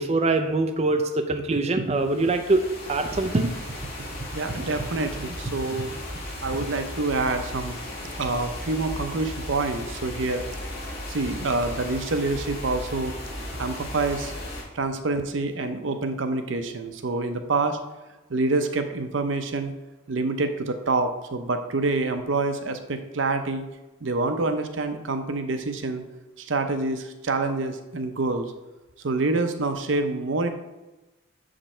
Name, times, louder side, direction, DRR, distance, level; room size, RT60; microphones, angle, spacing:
voice 1, 0.0-3.5, right 2 dB, 35° right, 6 dB, 0.5 m, -23 dB
sound 1, 1.9-14.6, left 1 dB, 55° left, 2.3 m, -36 dB
voice 2, 4.3-5.9 6.4-7.8 8.2-10.4 11.1-13.1 13.6-14.3 14.7-17.8 18.3-19.7 20.1-23.6 24.0-26.0 26.4-28.5 29.0-30.5, right 3 dB, 70° right, 8 dB, 0.7 m, -27 dB
7.2 x 5.0 x 4.3 m, 1.1 s
head